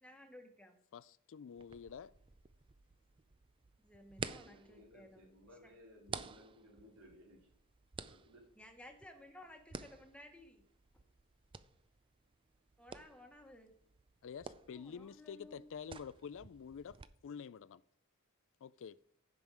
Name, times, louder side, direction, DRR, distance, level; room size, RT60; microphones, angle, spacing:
voice 1, 0.0-0.8 3.8-5.3 5.6-5.7 8.6-10.6 12.8-13.7 14.7-15.7, left 1 dB, 5° left, 1.3 m, -56 dB
voice 2, 0.9-2.1 14.2-17.0 17.2-17.8 18.6-19.0, left 7 dB, 60° left, 0.4 m, -48 dB
sound 1, 1.6-17.1, right 5 dB, 25° right, 0.4 m, -52 dB
voice 3, 4.4-7.5 8.1-8.5, equal, 85° right, 4.0 m, -60 dB
16.0 x 5.3 x 4.7 m
head